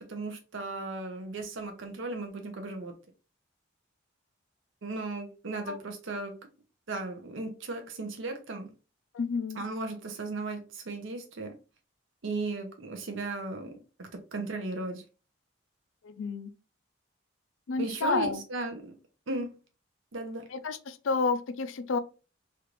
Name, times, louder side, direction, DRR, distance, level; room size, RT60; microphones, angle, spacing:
voice 1, 0.1-2.9 4.8-6.3 6.9-8.7 9.6-11.5 12.2-15.0 17.8-18.9 19.3-19.5 20.1-20.5, right 3 dB, 75° right, 0.6 m, -36 dB
voice 2, 9.1-9.6 16.0-16.5 17.7-18.4 20.5-22.0, left 4 dB, 75° left, 0.4 m, -30 dB
3.2 x 2.5 x 2.9 m
head